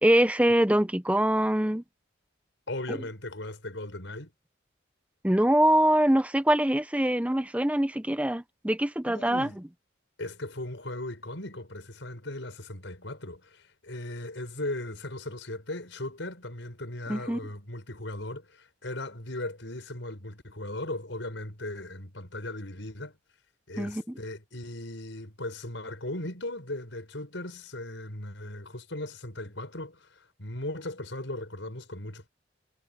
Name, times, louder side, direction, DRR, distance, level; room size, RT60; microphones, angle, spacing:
voice 1, 0.0-1.8 2.9-3.0 5.2-9.5 17.1-17.4 23.8-24.1, right 1 dB, 5° right, 0.8 m, -24 dB
voice 2, 2.7-4.3 9.0-9.6 10.2-23.1 23.7-32.3, left 1 dB, 75° left, 5.3 m, -38 dB
head